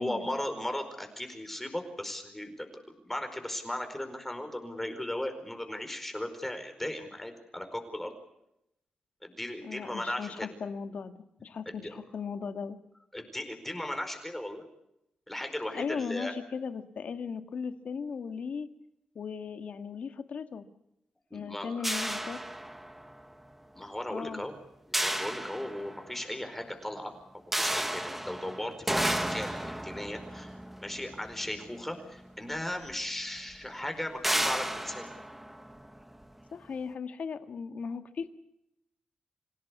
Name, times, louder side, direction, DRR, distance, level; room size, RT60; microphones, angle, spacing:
voice 1, 0.0-8.1 9.2-10.5 11.8-12.0 13.1-14.6 15.3-16.3 21.3-21.9 23.7-24.5 24.9-27.1 27.5-30.5 30.8-35.0, left 1 dB, 10° left, 6 dB, 4.7 m, -37 dB
voice 2, 9.6-11.1 11.4-12.8 15.7-18.7 19.2-20.7 21.3-22.4 24.1-24.4 36.5-38.3, left 6 dB, 65° left, 8 dB, 1.8 m, -37 dB
sound 1, 21.8-23.2 24.9-26.2 27.5-32.0 32.9-33.0 33.4-33.5 34.2-36.2, right 1 dB, 5° right, 1.3 m, -33 dB
26.5 x 17.0 x 8.4 m, 0.83 s
wide cardioid pair, 105°, 3 cm